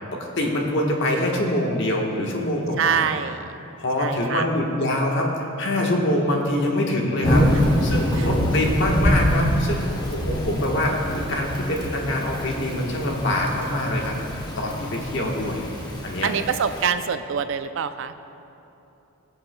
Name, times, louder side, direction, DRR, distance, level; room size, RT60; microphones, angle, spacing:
voice 1, 0.1-3.1 3.8-14.1 14.6-15.6 16.0-16.3, left 1 dB, 55° left, -1 dB, 1.2 m, -25 dB
voice 2, 2.8-3.6 4.0-4.5 8.1-8.3 16.2-18.2, right 7 dB, 60° right, 11 dB, 0.4 m, -25 dB
Thunder / Rain, 7.2-16.9, equal, 20° left, 0.8 m, -25 dB
19.0 x 7.9 x 2.2 m, 2.8 s
head